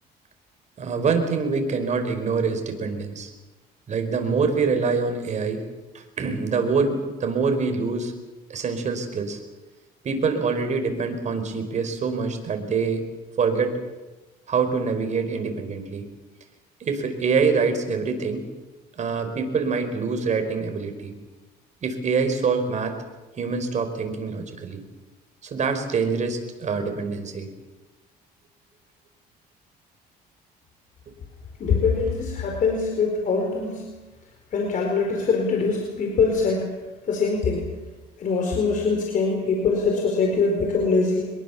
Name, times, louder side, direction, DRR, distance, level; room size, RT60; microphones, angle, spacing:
voice 1, 0.8-3.3 3.9-5.6 5.9-8.1 8.5-9.4 10.0-13.1 13.4-13.8 14.5-16.0 16.8-18.4 19.0-21.1 21.8-23.0 23.4-24.8 25.4-27.5, right 5 dB, 45° right, 6 dB, 4.9 m, -25 dB
voice 2, 31.6-33.8 34.5-36.7 37.1-37.7 38.2-41.2, left 4 dB, 50° left, 1 dB, 4.7 m, -23 dB
24.5 x 22.0 x 7.3 m, 1.1 s
cardioid pair, 110°, 17 cm